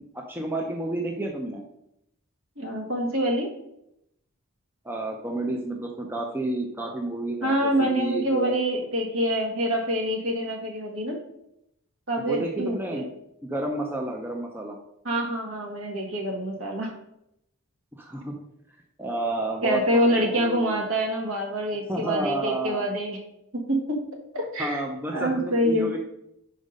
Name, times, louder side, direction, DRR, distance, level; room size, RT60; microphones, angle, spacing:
voice 1, 0.0-1.6 4.8-8.6 12.2-13.1 13.4-14.8 18.0-18.4 19.0-20.9 21.9-22.9 24.6-26.0, right 2 dB, 10° right, 1 dB, 0.6 m, -30 dB
voice 2, 2.6-3.5 7.4-11.2 12.1-13.0 15.0-16.9 19.6-23.2 23.5-24.0 24.3-24.8 25.1-26.0, equal, 65° right, 0 dB, 1.7 m, -26 dB
5.3 x 5.1 x 5.2 m, 0.79 s
head